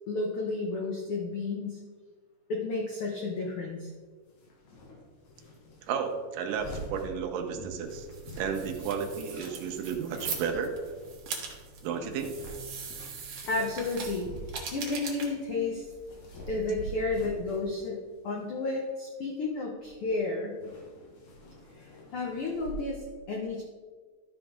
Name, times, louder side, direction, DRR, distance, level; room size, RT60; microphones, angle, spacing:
voice 1, 0.1-1.8 2.5-3.9 13.5-14.3 14.7-15.8 16.5-20.6 21.8-23.6, left 3 dB, 85° left, -1 dB, 1.2 m, -32 dB
sound 1, 3.0-3.1 4.3-15.0 15.3-17.9 18.2-18.6 19.4-19.5 19.8-20.2 20.4-22.7, equal, 60° left, 2.9 m, -46 dB
voice 2, 5.8-8.1 8.4-10.7 11.8-12.3, right 6 dB, 80° right, 4 dB, 2.5 m, -33 dB
sound 2, 7.8-17.0, right 5 dB, 55° right, 2.0 m, -42 dB
12.5 x 5.9 x 3.6 m, 1.5 s
omnidirectional pair, 3.9 m